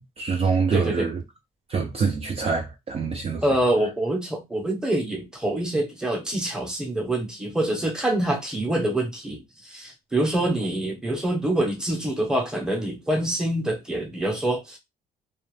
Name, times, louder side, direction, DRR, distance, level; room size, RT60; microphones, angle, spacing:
voice 1, 0.2-1.2 1.7-3.4, right 5 dB, 35° right, 0.5 m, -25 dB
voice 2, 0.7-1.1 3.4-9.4 9.7-14.8, right 1 dB, 5° right, 0.9 m, -25 dB
2.4 x 2.1 x 3.2 m
cardioid pair, 110°, 17 cm